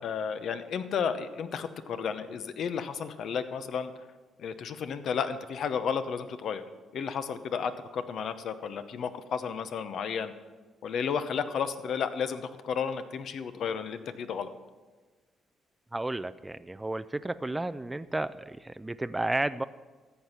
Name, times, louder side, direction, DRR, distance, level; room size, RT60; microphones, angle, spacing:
voice 1, 0.0-3.9 4.4-6.6 6.9-10.3 10.8-14.5, left 6 dB, 65° left, 10 dB, 0.8 m, -32 dB
voice 2, 15.9-19.6, right 2 dB, 15° right, 13 dB, 0.4 m, -32 dB
14.0 x 8.1 x 5.7 m, 1.3 s
cardioid pair, 90°, 0 cm